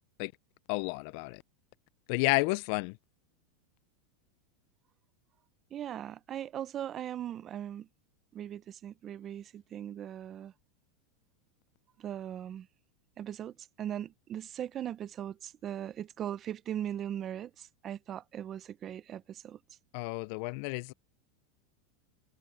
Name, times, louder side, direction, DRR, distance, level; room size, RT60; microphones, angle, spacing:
voice 1, 0.7-1.4 2.1-3.0 19.9-20.9, left 26 dB, 45° left, 0.4 m, -31 dB
voice 2, 5.7-7.9 8.3-10.5 12.0-12.7 13.2-19.6, right 10 dB, 20° right, 0.4 m, -39 dB
supercardioid pair, 170°, 0 cm